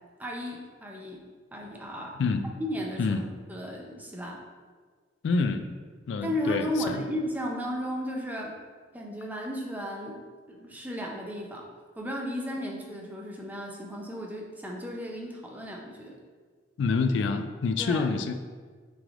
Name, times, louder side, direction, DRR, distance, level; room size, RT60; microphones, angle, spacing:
voice 1, 0.2-1.2 1.5-2.2 2.6-3.2 3.5-4.4 6.2-8.5 8.9-11.7 12.0-16.2 17.8-18.1, equal, 10° right, -1 dB, 0.6 m, -34 dB
voice 2, 2.2-2.5 3.0-3.3 5.2-5.7 6.1-7.0 16.8-18.3, left 4 dB, 85° left, 9 dB, 0.3 m, -27 dB
6.1 x 3.3 x 2.5 m, 1.5 s
head